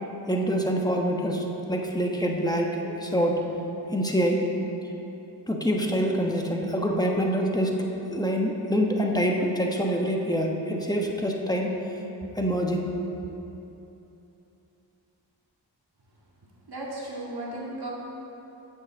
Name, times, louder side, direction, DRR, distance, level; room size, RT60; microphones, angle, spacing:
voice 1, 0.3-3.3 3.9-4.4 5.5-7.8 8.1-11.7 12.4-12.9, equal, 10° left, 0 dB, 1.1 m, -25 dB
voice 2, 16.7-17.9, right 1 dB, 60° right, -4 dB, 2.2 m, -35 dB
7.9 x 6.3 x 7.1 m, 3.0 s
wide cardioid pair, 70°, 43 cm